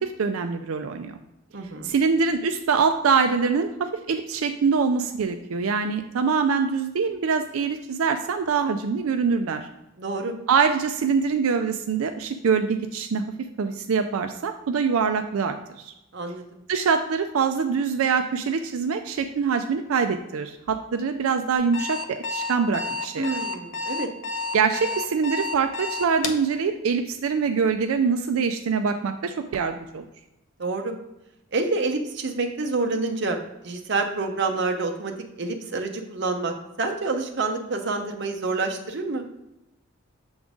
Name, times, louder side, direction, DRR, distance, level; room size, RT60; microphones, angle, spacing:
voice 1, 0.0-1.2 1.8-9.7 10.5-13.2 13.6-15.9 16.7-23.3 24.5-30.0, right 5 dB, 90° right, 6 dB, 0.4 m, -24 dB
voice 2, 1.5-2.0 10.0-10.3 16.1-16.6 23.2-24.1 30.6-30.9 31.5-33.4 33.6-35.1 35.4-39.2, right 3 dB, 55° right, 4 dB, 0.7 m, -27 dB
Alarm, 21.6-26.4, left 3 dB, 75° left, 0.7 m, -30 dB
7.0 x 3.8 x 3.6 m, 0.93 s
head